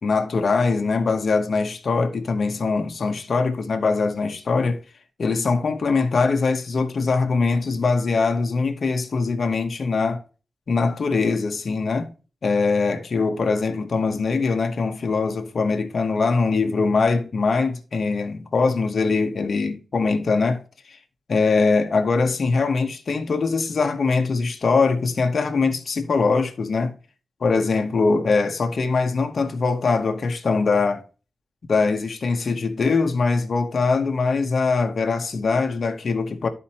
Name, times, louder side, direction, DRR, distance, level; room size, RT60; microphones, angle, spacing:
voice 1, 0.0-4.8 5.2-10.2 10.7-12.1 12.4-20.6 20.9-21.0 21.3-26.9 27.4-31.0 31.7-36.5, left 4 dB, 45° left, 1.0 m, -22 dB
12.5 x 4.3 x 2.9 m
wide cardioid pair, 160°, 0 cm